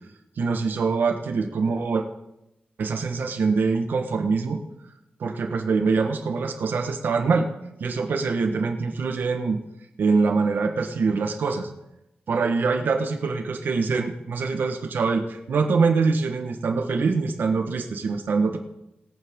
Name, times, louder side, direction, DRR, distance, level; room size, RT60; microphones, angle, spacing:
voice 1, 0.4-2.0 2.8-4.6 5.2-7.5 7.8-9.6 10.0-11.7 12.3-18.6, right 4 dB, 65° right, 5 dB, 1.3 m, -24 dB
22.5 x 8.8 x 3.7 m, 0.90 s
wide cardioid pair, 165°, 4 cm